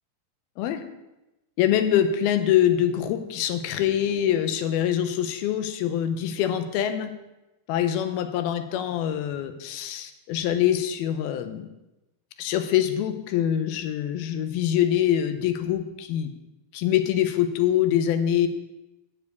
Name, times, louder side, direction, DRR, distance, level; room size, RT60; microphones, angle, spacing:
voice 1, 1.6-7.1 7.7-11.7 12.4-16.3 16.7-18.5, left 10 dB, 85° left, 9 dB, 2.7 m, -24 dB
7.4 x 7.1 x 8.1 m, 0.98 s
omnidirectional pair, 4.3 m